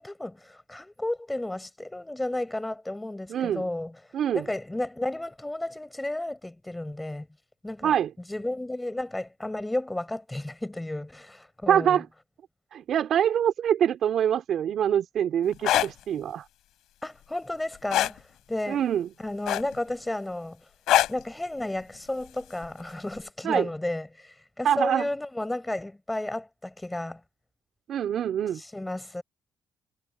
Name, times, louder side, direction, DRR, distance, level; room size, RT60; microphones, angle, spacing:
voice 1, 0.0-4.0 4.3-7.3 7.6-7.9 8.3-12.0 15.7-15.9 17.0-18.2 18.5-18.8 19.2-20.6 21.1-27.2 28.6-29.2, left 1 dB, 10° left, 7.7 m, -33 dB
voice 2, 3.3-3.7 4.1-4.5 7.8-8.1 11.7-12.1 12.7-16.4 18.7-19.1 23.4-23.7 24.6-25.1 27.9-28.6, right 9 dB, 65° right, 4.2 m, -25 dB
sound 1, 15.5-15.9 17.9-18.2 19.5-19.9 20.9-21.2 22.6-22.8, left 13 dB, 85° left, 7.0 m, -22 dB
cardioid pair, 90°, 0 cm